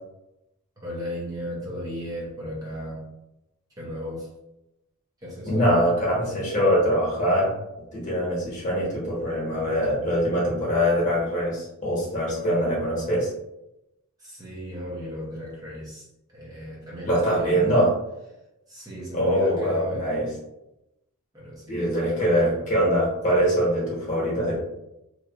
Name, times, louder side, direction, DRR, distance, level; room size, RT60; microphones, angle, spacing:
voice 1, 0.8-3.1 3.8-4.3 5.2-5.7 12.3-13.1 14.2-16.1 16.3-17.8 18.7-20.2 21.3-22.7, left 1 dB, 15° right, -6 dB, 0.5 m, -35 dB
voice 2, 5.5-7.6 7.9-13.3 17.0-17.9 19.1-20.3 21.7-24.6, equal, 35° left, -5 dB, 1.0 m, -23 dB
2.9 x 2.3 x 2.3 m, 0.89 s
head